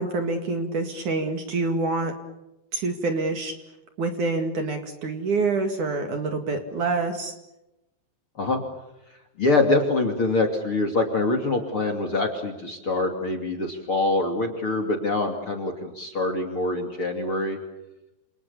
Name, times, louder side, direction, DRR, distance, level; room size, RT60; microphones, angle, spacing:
voice 1, 0.0-2.1 2.7-3.6 4.0-7.3, right 3 dB, 50° right, 6 dB, 3.1 m, -26 dB
voice 2, 9.4-17.6, left 2 dB, 35° left, 3 dB, 2.8 m, -24 dB
28.5 x 28.0 x 7.1 m, 0.94 s
omnidirectional pair, 5.1 m